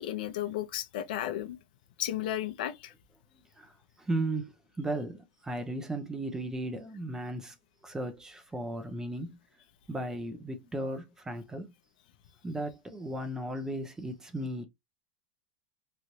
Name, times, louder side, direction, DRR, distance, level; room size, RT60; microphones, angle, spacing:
voice 1, 0.0-1.6 2.0-2.9, left 12 dB, 70° left, 0.7 m, -34 dB
voice 2, 3.6-7.5 7.8-9.4 9.9-11.7 12.4-14.6, right 1 dB, 10° right, 0.7 m, -36 dB
3.1 x 2.6 x 2.9 m
supercardioid pair, 120°, 5 cm